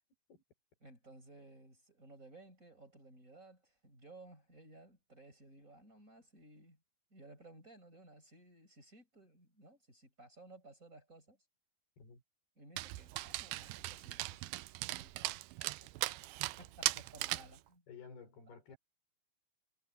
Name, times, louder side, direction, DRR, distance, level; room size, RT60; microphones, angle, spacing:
voice 1, 0.8-6.8 7.1-11.4 12.6-14.6 14.9-16.0 16.6-17.8 18.5-18.7, right 2 dB, 20° right, 5.9 m, -58 dB
Dog, 12.8-17.6, right 19 dB, 85° right, 2.4 m, -39 dB
voice 2, 17.9-18.8, left 5 dB, 85° left, 8.4 m, -53 dB
omnidirectional pair, 4.4 m